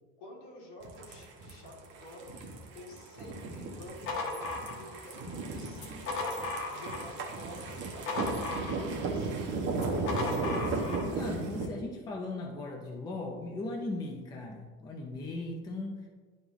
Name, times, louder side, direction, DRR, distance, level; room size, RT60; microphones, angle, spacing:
voice 1, 0.2-6.3 6.7-9.7, left 1 dB, 65° left, -3 dB, 2.1 m, -50 dB
sound 1, 0.8-11.7, right 3 dB, 40° right, 1.0 m, -36 dB
sound 2, 3.7-5.2 5.7-7.2 7.5-9.1 9.7-11.1, left 3 dB, 45° left, 1.3 m, -36 dB
voice 2, 9.9-10.5 11.0-16.1, left 2 dB, 15° left, 0 dB, 0.5 m, -38 dB
11.0 x 3.7 x 3.0 m, 1.4 s
cardioid pair, 175°, 30 cm